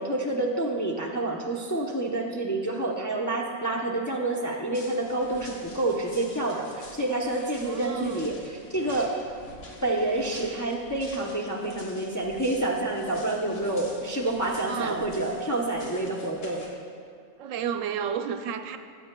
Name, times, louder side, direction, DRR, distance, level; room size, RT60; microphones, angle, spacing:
voice 1, 0.0-9.1 9.8-16.6, right 2 dB, 25° left, -2 dB, 0.4 m, -28 dB
sound 1, 4.7-16.7, left 1 dB, 80° left, 1.7 m, -48 dB
voice 2, 7.7-8.3 14.7-15.1 17.4-18.8, right 7 dB, 85° right, 8 dB, 0.9 m, -32 dB
14.5 x 8.6 x 2.2 m, 2.3 s
omnidirectional pair, 1.3 m